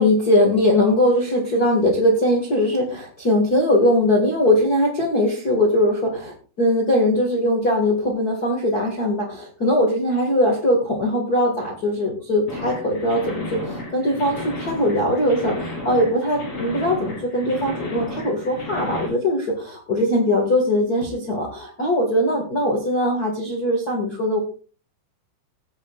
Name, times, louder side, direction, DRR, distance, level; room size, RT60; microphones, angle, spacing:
voice 1, 0.0-24.4, left 1 dB, 55° left, -1 dB, 1.0 m, -20 dB
sound 1, 12.5-19.1, left 2 dB, 30° left, 5.3 m, -33 dB
19.0 x 8.5 x 2.4 m, 0.39 s
omnidirectional pair, 5.1 m